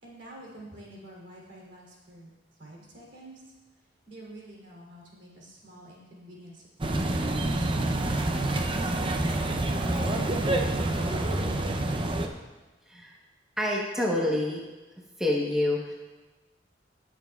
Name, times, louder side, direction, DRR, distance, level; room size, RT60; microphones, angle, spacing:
voice 1, 0.0-2.3 2.6-3.5 4.1-8.0 8.7-10.6 11.1-12.1, right 1 dB, 65° right, -3 dB, 3.2 m, -47 dB
sound 1, 6.8-12.3, right 2 dB, 25° right, 0.6 m, -27 dB
voice 2, 12.9-13.2 13.6-14.6 15.2-15.9, left 1 dB, 5° right, -4 dB, 1.1 m, -27 dB
19.0 x 7.1 x 2.4 m, 1.2 s
head